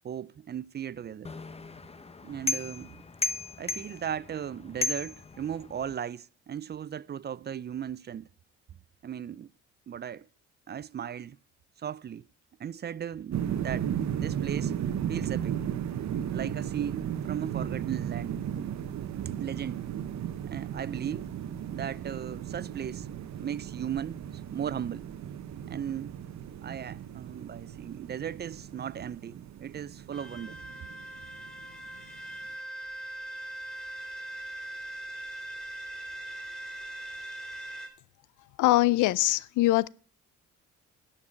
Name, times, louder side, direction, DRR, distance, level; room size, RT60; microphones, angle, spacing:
voice 1, 0.0-1.3 2.2-3.0 3.6-8.3 9.0-9.5 9.9-10.3 10.7-11.4 11.8-12.3 12.6-14.7 15.1-15.6 16.3-18.4 19.4-19.8 20.5-21.3 21.7-23.1 23.4-25.1 25.7-26.2 26.6-30.6, right 9 dB, 35° right, 0.4 m, -37 dB
sound 1, 1.2-5.9, left 3 dB, 20° left, 0.8 m, -35 dB
sound 2, 13.3-32.2, right 9 dB, 65° right, 1.0 m, -35 dB
sound 3, 30.1-37.9, right 1 dB, ahead, 2.8 m, -41 dB
voice 2, 38.6-39.9, left 17 dB, 80° left, 0.5 m, -22 dB
11.0 x 5.8 x 8.8 m
cardioid pair, 90°, 30 cm